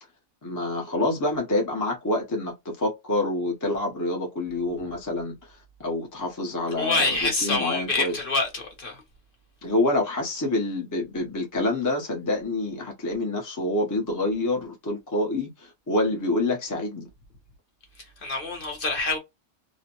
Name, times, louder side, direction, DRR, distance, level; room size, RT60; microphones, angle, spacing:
voice 1, 0.4-5.4 5.8-8.1 9.6-17.1, left 2 dB, 20° left, 0.5 m, -27 dB
voice 2, 6.8-9.0 18.2-19.2, left 2 dB, 45° left, 1.0 m, -26 dB
2.5 x 2.1 x 2.8 m
omnidirectional pair, 1.5 m